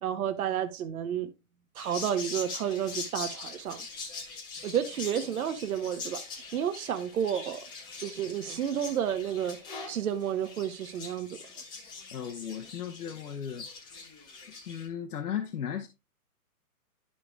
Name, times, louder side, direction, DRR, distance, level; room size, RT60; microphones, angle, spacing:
voice 1, 0.0-1.3 1.7-3.9 4.6-6.2 6.5-7.6 8.0-9.6 9.9-11.3, right 9 dB, 70° right, 1.0 m, -31 dB
sound 1, 1.8-14.9, left 4 dB, 10° left, 0.7 m, -43 dB
voice 2, 12.1-13.7 14.7-15.9, left 8 dB, 80° left, 1.0 m, -36 dB
11.5 x 5.3 x 2.2 m
hypercardioid pair, 150°, 45 cm